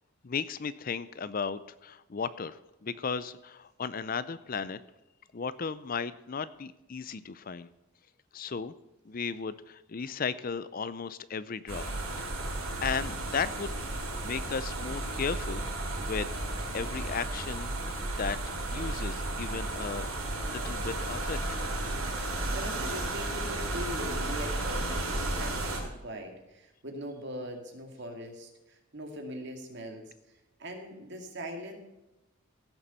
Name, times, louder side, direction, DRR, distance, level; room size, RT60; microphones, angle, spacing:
voice 1, 0.2-4.8 5.3-7.7 8.3-8.7 9.1-11.8 12.8-15.6 16.0-16.3 16.7-17.7 18.1-18.4 18.7-20.1 20.5-21.6, left 5 dB, 40° left, 15 dB, 0.5 m, -35 dB
sound 1, 11.7-25.8, right 2 dB, 75° right, 5.1 m, -33 dB
voice 2, 22.1-30.1 30.6-31.8, equal, 50° right, 3 dB, 2.3 m, -41 dB
16.0 x 7.1 x 5.5 m, 0.99 s
head